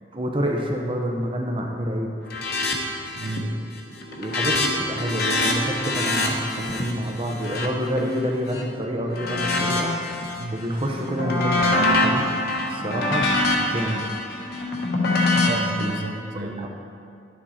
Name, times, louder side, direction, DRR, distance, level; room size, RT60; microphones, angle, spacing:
voice 1, 0.1-2.1 4.1-10.0 10.5-12.2 12.7-13.3 13.6-14.0 15.8-16.0 16.3-16.7, equal, 30° right, 1 dB, 0.8 m, -28 dB
sound 1, 2.3-2.8 3.0-3.5 3.8-8.6 9.1-10.4 10.8-15.9, left 2 dB, 55° left, 1.2 m, -24 dB
voice 2, 3.1-3.6 10.4-10.6 15.5-16.7, right 2 dB, 85° right, 5 dB, 0.7 m, -32 dB
11.5 x 7.1 x 4.3 m, 2.4 s
head